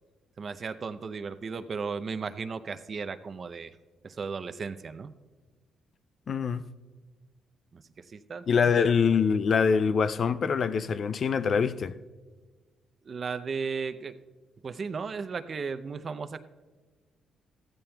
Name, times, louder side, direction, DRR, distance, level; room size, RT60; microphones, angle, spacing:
voice 1, 0.4-3.8 4.0-5.1 7.7-8.9 13.0-14.2 14.6-16.4, right 5 dB, 45° right, 0.6 m, -35 dB
voice 2, 6.3-6.6 8.5-11.9, left 6 dB, 50° left, 0.4 m, -24 dB
15.0 x 14.0 x 2.3 m
cardioid pair, 90°, 0 cm